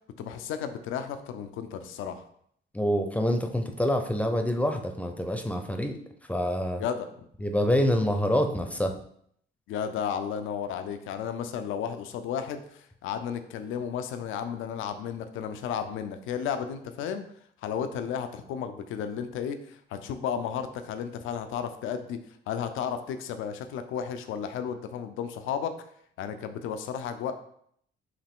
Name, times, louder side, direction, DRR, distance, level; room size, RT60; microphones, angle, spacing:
voice 1, 0.2-2.2 6.8-7.3 9.7-17.2 17.6-22.2 22.5-25.7 26.2-27.3, left 8 dB, 90° left, 9 dB, 0.5 m, -33 dB
voice 2, 2.7-6.0 6.3-6.8 7.4-9.0, equal, 5° left, 5 dB, 0.5 m, -26 dB
4.8 x 3.0 x 3.6 m, 0.67 s
cardioid pair, 90°, 20 cm